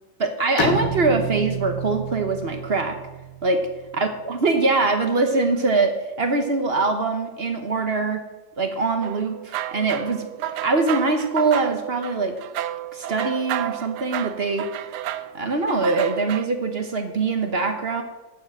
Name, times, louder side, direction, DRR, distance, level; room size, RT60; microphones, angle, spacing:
voice 1, 0.2-3.0 3.4-3.7 4.0-8.2 8.6-12.4 12.9-14.8 15.3-18.0, right 3 dB, 40° right, 6 dB, 1.1 m, -23 dB
Bowed string instrument, 0.6-4.2, right 2 dB, 60° left, 2.0 m, -29 dB
sound 1, 9.0-16.5, right 12 dB, 75° right, 1.1 m, -31 dB
9.6 x 7.1 x 7.9 m, 1.1 s
omnidirectional pair, 1.8 m